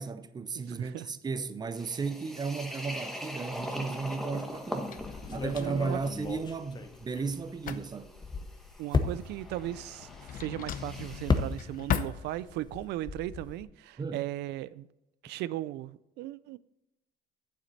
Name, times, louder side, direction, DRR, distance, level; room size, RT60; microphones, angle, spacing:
voice 1, 0.0-5.0 5.3-8.1 14.0-14.3, right 4 dB, 25° right, 0.7 m, -34 dB
voice 2, 0.7-1.1 5.6-6.0 8.8-14.9 15.2-16.6, right 14 dB, 80° right, 0.4 m, -37 dB
sound 1, 1.7-11.5, left 1 dB, ahead, 1.2 m, -43 dB
Drawer open or close, 3.5-12.9, left 9 dB, 55° left, 0.7 m, -40 dB
sound 2, 5.0-7.7 8.0-12.1 12.3-13.6, left 4 dB, 25° left, 0.8 m, -34 dB
8.7 x 7.6 x 4.1 m
cardioid pair, 110°, 17 cm